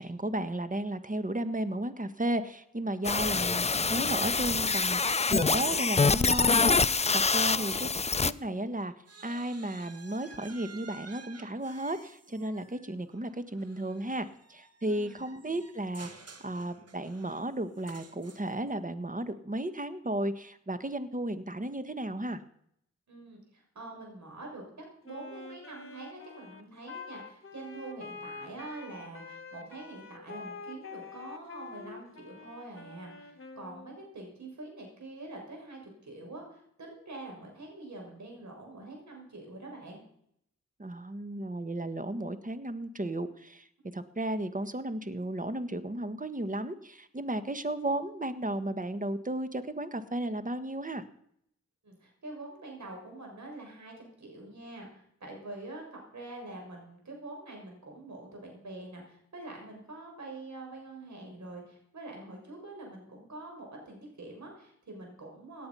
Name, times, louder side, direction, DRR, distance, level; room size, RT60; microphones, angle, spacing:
voice 1, 0.0-7.9 8.2-8.9 9.2-22.4 40.8-43.7 43.9-51.0, right 1 dB, 25° right, 11 dB, 1.5 m, -34 dB
sound 1, 3.0-8.3, left 4 dB, 20° left, 0.4 m, -26 dB
sound 2, 6.1-8.5 8.8-18.7, right 4 dB, 55° right, 1.9 m, -53 dB
voice 2, 7.4-7.9 14.9-15.2 23.1-40.0 51.8-65.7, right 2 dB, 70° right, 1 dB, 6.5 m, -45 dB
Wind instrument woodwind instrument, 25.1-34.0, left 4 dB, 45° left, 1.9 m, -46 dB
17.5 x 10.0 x 5.6 m, 0.70 s
cardioid pair, 50°, 30 cm